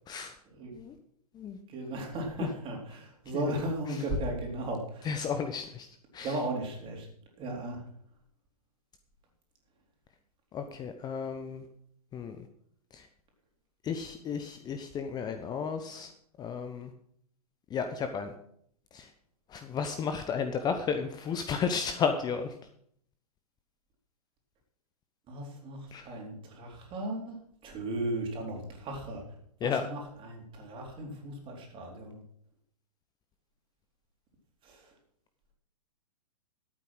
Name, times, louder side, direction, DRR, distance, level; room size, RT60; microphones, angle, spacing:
voice 1, 1.7-5.1 6.2-7.1 7.4-7.8 25.3-25.8 26.0-27.4 27.6-29.2 29.6-32.2 34.6-34.8, right 1 dB, 25° right, 0 dB, 4.0 m, -36 dB
voice 2, 5.0-5.9 6.1-6.4 10.5-11.6 12.1-12.4 12.9-13.1 13.8-16.1 16.4-16.9 17.7-18.3 18.9-19.1 19.5-22.5 25.9-26.1 29.6-29.9, left 6 dB, 20° left, 8 dB, 0.9 m, -33 dB
12.5 x 8.8 x 6.3 m, 0.67 s
figure-of-eight pair, 115°, 20 cm